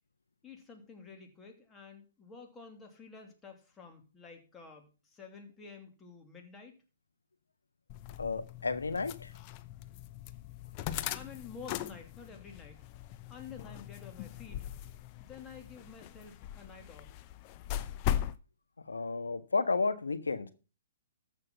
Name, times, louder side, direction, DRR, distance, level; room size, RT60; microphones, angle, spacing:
voice 1, 0.4-6.8 11.1-12.9 13.3-14.7 15.2-17.2, left 5 dB, 15° left, 3 dB, 2.9 m, -50 dB
sound 1, 7.9-18.4, left 11 dB, 35° left, 0.8 m, -40 dB
voice 2, 8.2-9.3 18.9-20.5, left 4 dB, 85° left, 10 dB, 1.5 m, -32 dB
14.0 x 6.2 x 5.7 m, 0.33 s
hypercardioid pair, 130°, 0 cm